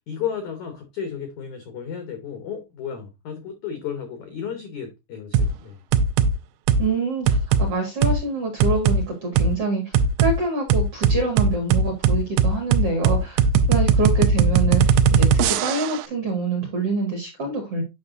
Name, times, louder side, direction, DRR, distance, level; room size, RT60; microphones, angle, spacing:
voice 1, 0.1-5.8, left 8 dB, 80° left, 1.7 m, -33 dB
sound 1, 5.3-5.5 5.9-6.3 6.7-6.9 7.3-7.7 8.0-8.2 8.6-9.0 9.4-9.5 9.9-10.3 10.7-16.0, right 5 dB, 85° right, 2.7 m, -18 dB
voice 2, 6.8-17.8, right 3 dB, 55° right, 1.7 m, -26 dB
9.5 x 5.6 x 2.5 m
omnidirectional pair, 5.1 m